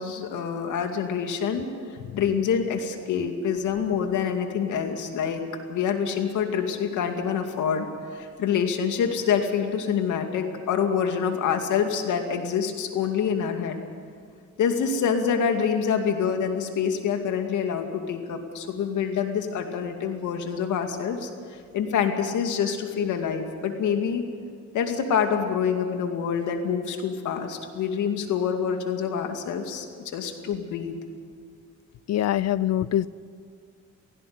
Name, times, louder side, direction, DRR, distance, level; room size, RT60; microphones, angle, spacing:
voice 1, 0.0-13.8 14.6-24.2 24.7-31.0, left 7 dB, 80° left, 5 dB, 2.4 m, -26 dB
voice 2, 32.1-33.1, left 12 dB, 60° left, 18 dB, 0.6 m, -24 dB
17.0 x 16.5 x 9.6 m, 2.1 s
cardioid pair, 90°, 30 cm